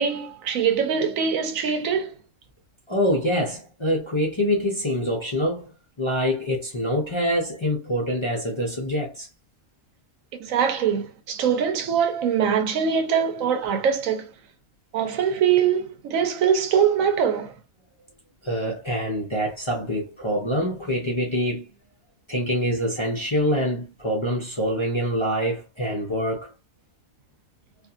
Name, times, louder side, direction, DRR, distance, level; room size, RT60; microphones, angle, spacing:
voice 1, 0.0-2.1 10.4-14.3 14.9-17.5, right 7 dB, 85° right, 1.0 m, -23 dB
voice 2, 2.9-5.7 6.0-9.3 18.4-21.7 22.3-26.5, equal, 30° left, 0.5 m, -25 dB
2.7 x 2.4 x 2.4 m
omnidirectional pair, 1.4 m